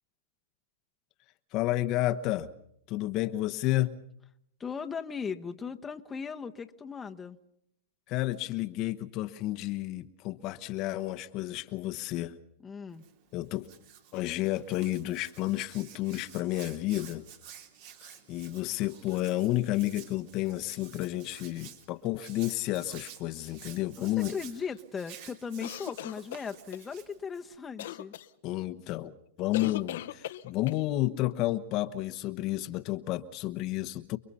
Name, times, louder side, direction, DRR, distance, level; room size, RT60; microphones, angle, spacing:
voice 1, 1.5-2.5 2.9-4.0 8.1-12.3 13.3-13.7 14.1-17.2 18.0-24.3 28.4-34.2, left 16 dB, 45° left, 1.0 m, -31 dB
voice 2, 4.6-7.4 12.6-13.0 24.0-28.1, left 6 dB, 15° left, 1.1 m, -38 dB
Hands, 12.9-27.6, right 9 dB, 60° right, 3.4 m, -51 dB
sound 1, 25.6-26.8 27.8-28.3 29.5-30.8, left 13 dB, 70° left, 1.0 m, -38 dB
29.5 x 22.0 x 5.5 m
hypercardioid pair, 125°, 0 cm